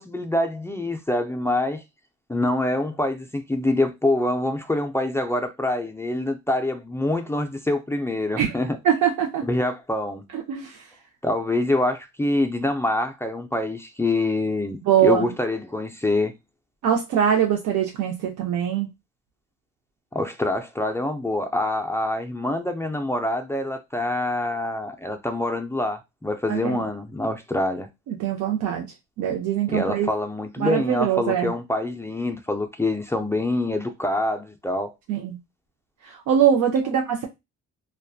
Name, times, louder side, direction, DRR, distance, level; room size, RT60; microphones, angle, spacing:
voice 1, 0.0-1.8 2.3-8.8 9.4-10.3 11.2-16.3 20.1-27.9 29.7-34.9, left 2 dB, 10° left, 0.3 m, -25 dB
voice 2, 8.8-9.4 10.3-10.8 14.8-15.3 16.8-18.9 26.5-26.8 28.1-28.9 29.2-30.1 30.6-31.5 35.1-35.4 36.0-37.3, right 9 dB, 70° right, 0.6 m, -22 dB
2.4 x 2.2 x 2.3 m
cardioid pair, 90°, 30 cm